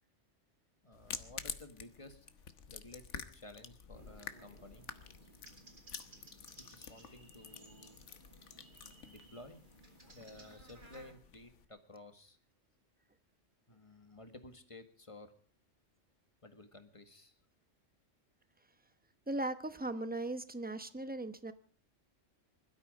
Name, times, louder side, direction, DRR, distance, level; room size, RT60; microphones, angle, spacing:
voice 1, 0.8-2.3 2.7-4.9 6.6-8.0 9.0-9.6 10.1-12.4 13.7-15.3 16.4-17.4, left 2 dB, 25° left, 8 dB, 1.8 m, -54 dB
sound 1, 0.9-11.6, left 7 dB, 70° left, 1.4 m, -49 dB
sound 2, 3.9-11.1, right 2 dB, 40° right, 2.8 m, -59 dB
voice 2, 19.3-21.5, right 2 dB, 10° right, 11 dB, 0.9 m, -38 dB
21.0 x 12.5 x 5.3 m, 0.43 s
omnidirectional pair, 1.3 m